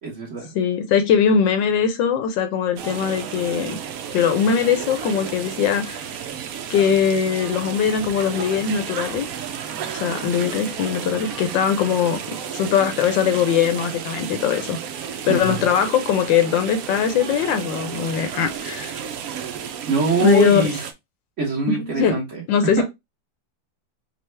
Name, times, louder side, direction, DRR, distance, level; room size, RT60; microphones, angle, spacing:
voice 1, 0.0-0.5 15.3-15.7 19.9-20.8 21.4-22.8, right 4 dB, 45° right, 1.3 m, -24 dB
voice 2, 0.5-3.8 4.1-6.0 6.7-9.3 9.9-12.2 12.5-14.8 15.3-18.9 20.2-20.7 21.7-22.2 22.5-22.8, left 7 dB, 75° left, 1.3 m, -21 dB
sound 1, 2.8-20.9, right 8 dB, 75° right, 0.8 m, -32 dB
5.4 x 2.4 x 3.2 m
omnidirectional pair, 2.2 m